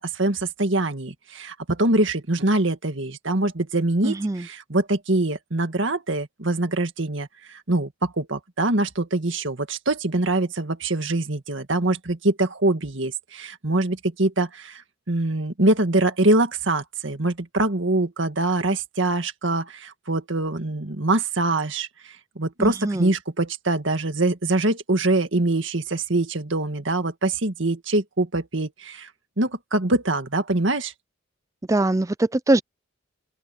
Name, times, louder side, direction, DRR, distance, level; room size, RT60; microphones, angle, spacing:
voice 1, 0.0-29.1 29.4-30.9, right 2 dB, 70° right, 1.9 m, -24 dB
voice 2, 4.0-4.4 22.6-23.1 31.7-32.6, right 2 dB, 15° right, 0.4 m, -22 dB
open air
head